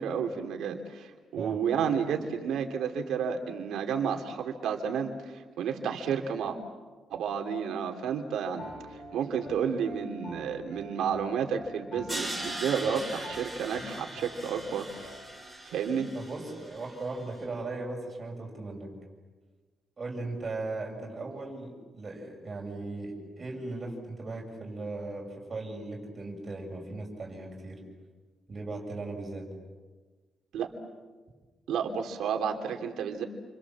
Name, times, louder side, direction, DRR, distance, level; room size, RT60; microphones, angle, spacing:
voice 1, 0.0-6.6 7.1-15.1 15.7-16.1 30.5-30.7 31.7-33.3, right 7 dB, 85° right, 4 dB, 2.9 m, -31 dB
Piano, 8.6-15.4, left 1 dB, 40° left, 5.8 m, -47 dB
Crash cymbal, 12.1-17.1, right 1 dB, 5° left, 7.5 m, -40 dB
voice 2, 16.1-18.9 20.0-27.8 28.5-29.5, right 2 dB, 25° right, 0 dB, 6.9 m, -38 dB
29.0 x 26.5 x 7.4 m, 1.4 s
cardioid pair, 165°, 0 cm